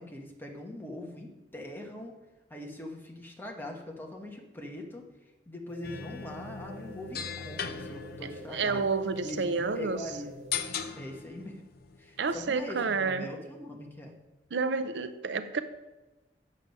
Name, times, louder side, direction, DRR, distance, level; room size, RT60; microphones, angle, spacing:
voice 1, 0.0-2.1 2.5-5.0 5.5-8.9 9.2-10.3 10.9-11.5 12.0-14.1, left 1 dB, 10° left, 1 dB, 1.2 m, -42 dB
sound 1, 5.7-11.1, right 1 dB, 40° right, 0.9 m, -49 dB
sound 2, 5.8-13.1, left 7 dB, 60° left, 0.5 m, -40 dB
voice 2, 8.5-10.0 12.2-13.3 14.5-15.6, right 4 dB, 70° right, 11 dB, 0.5 m, -29 dB
7.5 x 6.6 x 5.4 m, 1.1 s
head